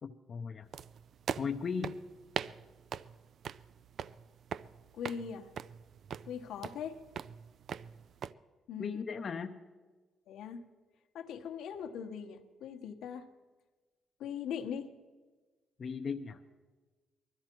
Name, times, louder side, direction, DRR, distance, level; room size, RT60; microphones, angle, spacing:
voice 1, 0.0-0.7 1.4-2.0 8.8-9.6 15.8-16.4, left 5 dB, 45° left, 5 dB, 0.6 m, -37 dB
sound 1, 0.7-8.3, right 8 dB, 60° right, 0.4 m, -42 dB
voice 2, 5.0-5.5 6.3-7.0 8.7-9.0 10.3-10.6 11.1-13.3 14.2-14.9, left 7 dB, 80° left, 5 dB, 1.1 m, -40 dB
19.5 x 13.0 x 4.5 m, 1.3 s
cardioid pair, 90°, 0 cm